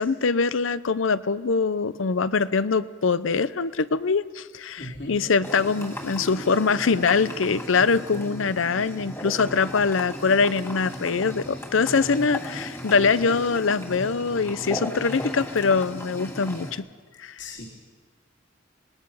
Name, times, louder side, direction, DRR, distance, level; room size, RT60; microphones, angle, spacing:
voice 1, 0.0-16.8 17.2-17.4, left 4 dB, 85° left, 16 dB, 0.7 m, -23 dB
voice 2, 4.8-5.2 17.4-17.7, left 1 dB, 65° left, -2 dB, 3.4 m, -37 dB
sound 1, 5.4-16.7, left 1 dB, 10° left, 1.6 m, -36 dB
26.0 x 20.5 x 5.6 m, 1.4 s
head